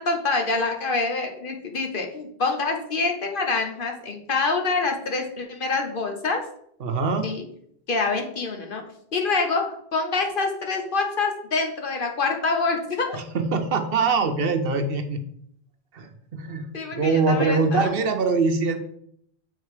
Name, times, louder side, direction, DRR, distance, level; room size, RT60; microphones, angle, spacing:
voice 1, 0.0-6.4 7.2-7.4 7.9-8.8 9.1-9.6 9.9-13.2 16.7-17.9, left 3 dB, 55° left, 3 dB, 1.1 m, -26 dB
voice 2, 6.8-7.3 13.1-15.2 15.9-18.8, right 4 dB, 65° right, 7 dB, 0.9 m, -23 dB
6.7 x 3.8 x 4.8 m, 0.67 s
omnidirectional pair, 1.1 m